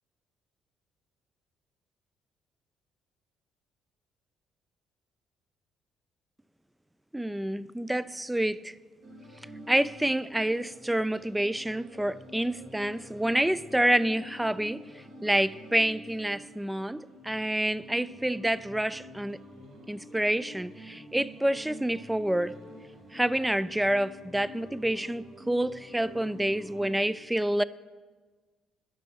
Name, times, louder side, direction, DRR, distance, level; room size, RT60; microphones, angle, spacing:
voice 1, 7.1-8.7 9.7-14.8 15.2-19.4 19.9-22.5 23.1-27.6, right 1 dB, 10° right, 0.3 m, -28 dB
sound 1, 9.0-27.1, equal, 60° right, 1.6 m, -48 dB
12.0 x 5.0 x 6.0 m
hypercardioid pair, 50°, 0 cm